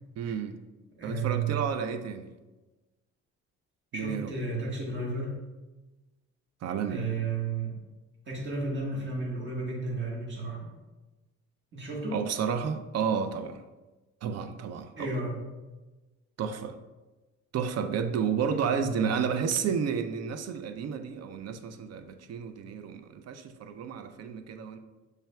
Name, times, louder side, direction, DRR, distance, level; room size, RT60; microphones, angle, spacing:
voice 1, 0.2-0.6 1.0-2.3 3.9-4.3 6.6-7.1 12.1-13.6 14.2-15.1 16.4-16.8 17.5-24.8, right 7 dB, 55° right, 8 dB, 0.5 m, -31 dB
voice 2, 1.0-1.6 3.9-5.4 6.9-7.7 8.3-10.6 11.7-12.2 14.9-15.4 19.0-19.1, right 3 dB, 40° right, -3 dB, 1.5 m, -33 dB
6.6 x 3.3 x 2.3 m, 1.2 s
cardioid pair, 90°, 30 cm